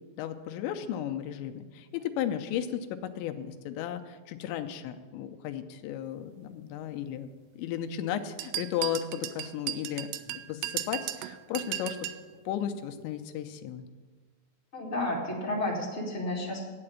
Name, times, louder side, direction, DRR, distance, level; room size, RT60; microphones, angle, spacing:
voice 1, 0.2-7.3 7.6-12.0 12.5-13.8, left 10 dB, 85° left, 7 dB, 2.9 m, -34 dB
sound 1, 8.4-12.3, right 14 dB, 80° right, 2.5 m, -36 dB
voice 2, 14.7-16.8, left 1 dB, 50° left, -4 dB, 0.8 m, -32 dB
8.8 x 7.7 x 8.6 m, 1.4 s
omnidirectional pair, 5.2 m